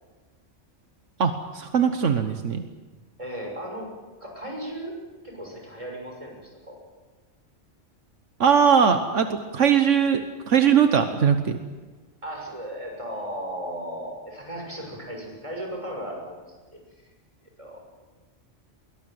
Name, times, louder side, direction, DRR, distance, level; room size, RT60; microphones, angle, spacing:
voice 1, 1.2-2.6 8.4-11.6, right 7 dB, 80° right, 7 dB, 1.5 m, -20 dB
voice 2, 3.2-3.9 4.2-4.9 5.2-6.8 12.2-16.4 16.7-16.8 17.6-17.8, equal, 25° right, 0 dB, 6.4 m, -35 dB
22.0 x 18.5 x 9.2 m, 1.3 s
omnidirectional pair, 1.3 m